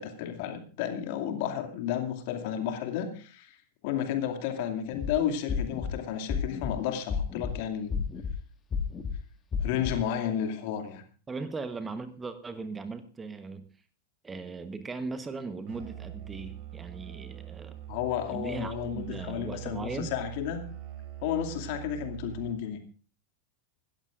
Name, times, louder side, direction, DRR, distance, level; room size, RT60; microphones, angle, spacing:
voice 1, 0.0-3.6 3.8-8.1 9.6-11.0 17.9-20.6 21.2-22.8, left 9 dB, 45° left, 5 dB, 2.4 m, -32 dB
sound 1, 4.9-5.1 5.5-5.9 6.3-6.7 7.1-7.5 7.9-8.3 8.7-9.1 9.5-9.9, left 6 dB, 20° left, 1.8 m, -31 dB
voice 2, 11.3-13.7 14.2-17.8 18.3-20.1, right 4 dB, 15° right, 10 dB, 1.2 m, -38 dB
Musical instrument, 15.7-22.7, right 11 dB, 45° right, 3.1 m, -43 dB
26.0 x 13.0 x 2.6 m, 0.40 s
figure-of-eight pair, 90°, 0 cm